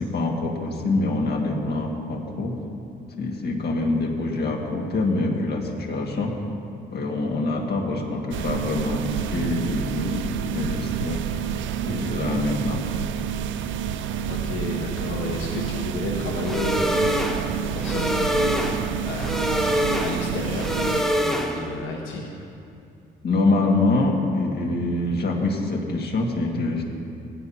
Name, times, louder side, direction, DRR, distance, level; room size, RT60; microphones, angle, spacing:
voice 1, 0.0-2.5 3.2-6.3 6.9-11.5 11.8-12.8 18.7-18.9 23.2-26.8, left 2 dB, 55° left, 0 dB, 1.8 m, -25 dB
sound 1, 8.3-21.0, right 9 dB, 75° right, 0.5 m, -29 dB
voice 2, 14.3-19.6 20.0-22.4, left 3 dB, 85° left, -1 dB, 1.2 m, -32 dB
sound 2, 16.4-21.8, equal, ahead, 1.0 m, -25 dB
17.5 x 10.5 x 2.8 m, 2.5 s
cardioid pair, 90°, 20 cm